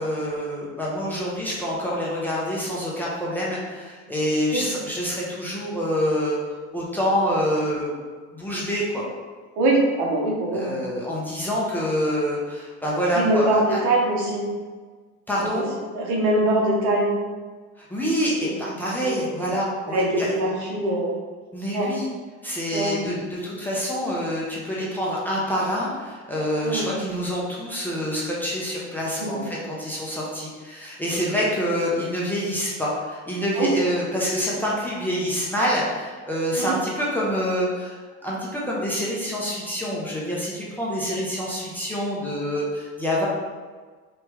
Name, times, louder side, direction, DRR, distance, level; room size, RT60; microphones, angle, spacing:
voice 1, 0.0-6.4 6.7-7.9 8.3-9.0 10.5-13.8 15.3-15.7 17.8-20.3 21.5-22.1 22.4-29.4 29.8-43.3, equal, 5° left, -6 dB, 0.5 m, -26 dB
voice 2, 9.6-10.8 13.1-14.5 15.5-15.6 15.9-17.2 18.4-18.7 19.0-19.2 19.9-21.2 21.7-21.9 22.7-23.0 26.6-27.0 29.2-29.4 31.1-31.2 33.6-33.7 36.6-36.7, right 2 dB, 70° right, -1 dB, 1.0 m, -23 dB
3.4 x 3.1 x 3.0 m, 1.4 s
cardioid pair, 160°, 30 cm